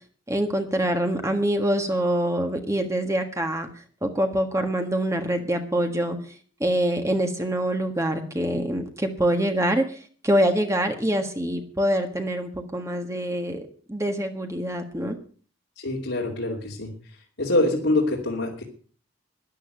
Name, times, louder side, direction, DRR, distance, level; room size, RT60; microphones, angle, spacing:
voice 1, 0.3-3.7 4.0-6.2 6.6-13.6 13.9-15.2, right 1 dB, 15° right, 5 dB, 1.5 m, -25 dB
voice 2, 15.8-16.9 17.4-18.6, left 2 dB, 80° left, -4 dB, 2.9 m, -24 dB
13.0 x 11.0 x 6.7 m, 0.43 s
head